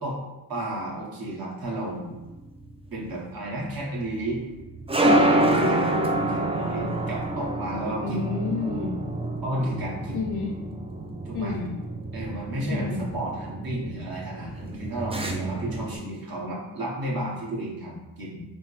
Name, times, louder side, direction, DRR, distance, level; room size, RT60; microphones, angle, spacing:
voice 1, 0.5-2.2 2.9-4.4 5.0-8.2 9.4-10.2 11.2-11.5 12.1-18.4, right 1 dB, 55° right, -4 dB, 1.3 m, -32 dB
sound 1, 1.9-16.0, right 1 dB, 15° right, 0.3 m, -28 dB
voice 2, 8.0-9.0 10.1-10.5 11.3-11.8 12.7-13.0, left 4 dB, 65° left, 0 dB, 0.6 m, -30 dB
6.0 x 2.0 x 3.2 m, 1.1 s
wide cardioid pair, 90°, 43 cm